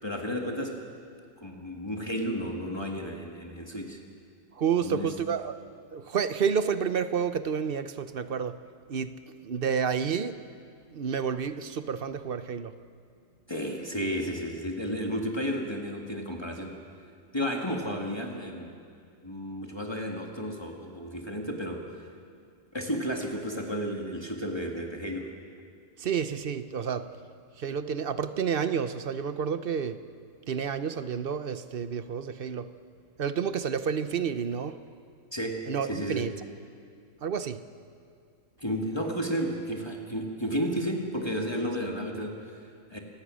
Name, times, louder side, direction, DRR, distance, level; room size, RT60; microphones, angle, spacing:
voice 1, 0.0-0.9 1.4-4.0 4.8-5.1 13.5-16.8 17.3-18.7 19.2-22.1 22.7-25.3 35.3-36.3 38.6-43.0, equal, 20° left, 0 dB, 1.9 m, -32 dB
voice 2, 4.6-5.6 5.9-8.6 8.9-9.1 9.4-10.4 10.9-12.7 26.0-27.1 27.6-30.0 30.5-32.7 33.2-34.8 35.7-36.3 37.2-37.6, right 7 dB, 50° right, 11 dB, 0.9 m, -30 dB
28.5 x 16.5 x 6.4 m, 2.4 s
omnidirectional pair, 1.4 m